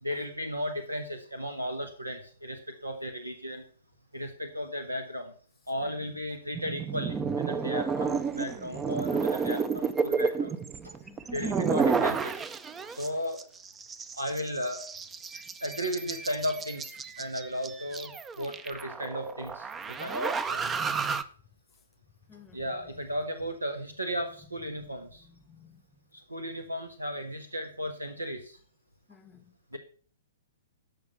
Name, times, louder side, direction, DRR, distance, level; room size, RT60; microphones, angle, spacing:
voice 1, 0.0-3.6 4.1-5.3 5.7-10.6 10.8-11.0 11.3-12.4 13.0-13.4 14.2-14.8 15.6-20.7 22.5-25.3 26.1-28.6 29.7-29.8, equal, 85° right, 1.4 m, -35 dB
voice 2, 5.8-6.1 11.0-11.4 14.3-14.4 22.3-22.7 24.6-25.9 29.1-29.8, left 7 dB, 15° left, 0.9 m, -56 dB
sound 1, 6.5-13.1 13.4-21.2, right 5 dB, 15° right, 0.6 m, -31 dB
13.0 x 5.6 x 5.6 m
figure-of-eight pair, 115°, 0 cm